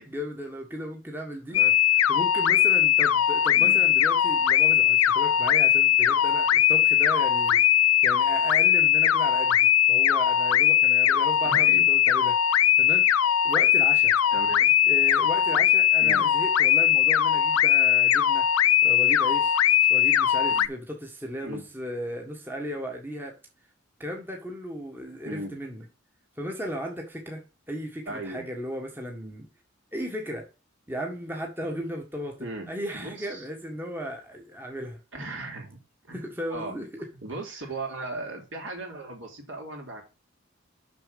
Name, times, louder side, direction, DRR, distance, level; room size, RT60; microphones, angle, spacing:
voice 1, 0.0-1.6 2.1-9.6 9.9-12.4 12.8-14.1 14.8-18.5 18.8-19.6 19.9-23.3 24.0-25.8 26.4-29.5 29.9-30.4 30.9-35.0 36.1-36.9, equal, 10° right, 1.5 m, -36 dB
sound 1, 1.5-20.7, left 10 dB, 90° left, 0.5 m, -20 dB
voice 2, 11.4-11.9 14.3-14.7 16.0-16.3 20.5-20.7 21.4-21.7 25.2-25.6 28.1-28.4 32.4-32.7 32.9-33.5 35.1-36.8 37.2-40.0, right 2 dB, 60° right, 3.4 m, -37 dB
6.9 x 6.4 x 5.3 m
head